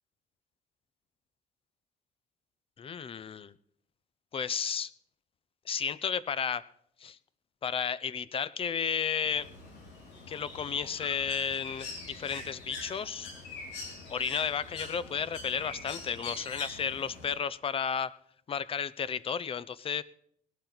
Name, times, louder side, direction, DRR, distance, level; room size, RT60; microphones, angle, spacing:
voice 1, 2.8-3.5 4.3-4.9 5.7-6.7 7.0-7.2 7.6-9.5 10.3-13.3 14.1-18.2 18.5-20.0, left 7 dB, 35° left, 19 dB, 0.6 m, -33 dB
Bird, 9.2-17.3, left 3 dB, 85° left, 4.5 m, -44 dB
19.0 x 11.5 x 4.0 m, 0.69 s
cardioid pair, 110°, 17 cm